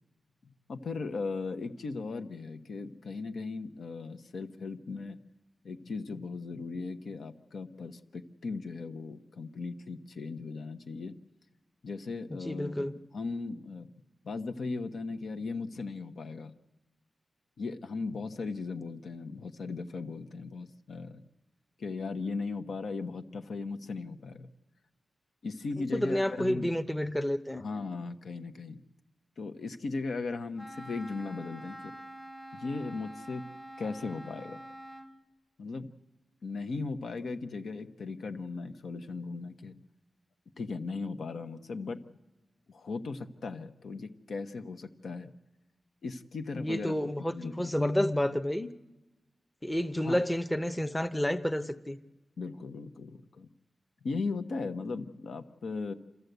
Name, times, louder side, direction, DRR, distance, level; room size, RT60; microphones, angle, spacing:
voice 1, 0.4-5.2 5.6-11.1 11.8-12.9 13.1-13.9 14.2-16.5 17.6-21.2 21.8-24.5 25.4-26.7 27.6-28.8 29.4-31.9 32.5-33.4 33.8-34.6 35.6-35.9 36.4-39.8 40.6-42.0 42.7-45.3 46.0-47.7 50.0-50.2 52.4-53.5 54.0-55.9, left 4 dB, 75° left, 7 dB, 1.1 m, -37 dB
voice 2, 12.3-12.9 25.9-27.6 46.5-48.7 49.6-52.0, left 1 dB, 10° left, 9 dB, 0.7 m, -30 dB
Wind instrument woodwind instrument, 30.6-35.1, right 1 dB, 30° left, 1.6 m, -46 dB
27.5 x 13.5 x 8.1 m, 1.1 s
wide cardioid pair, 115°, 0 cm